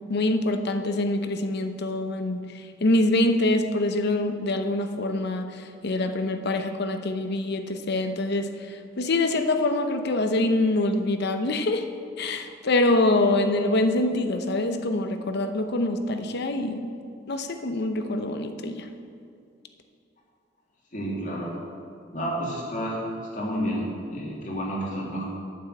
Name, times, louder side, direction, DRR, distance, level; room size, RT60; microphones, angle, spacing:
voice 1, 0.1-11.9 12.2-16.9 17.3-18.9, left 2 dB, 60° left, 7 dB, 0.8 m, -25 dB
voice 2, 20.9-21.6 22.1-23.0 23.3-25.2, equal, 45° left, -4 dB, 2.6 m, -30 dB
8.9 x 7.0 x 8.1 m, 2.4 s
head